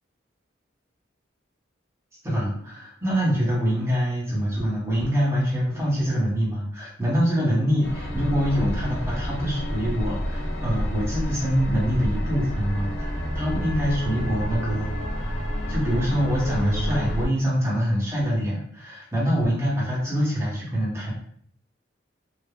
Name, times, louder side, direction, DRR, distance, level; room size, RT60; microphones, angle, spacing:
voice 1, 2.2-14.9 15.1-15.4 15.7-21.1, equal, 15° right, -7 dB, 0.9 m, -25 dB
sound 1, 7.8-17.3, equal, 65° left, 0.5 m, -29 dB
3.3 x 2.0 x 2.3 m, 0.63 s
head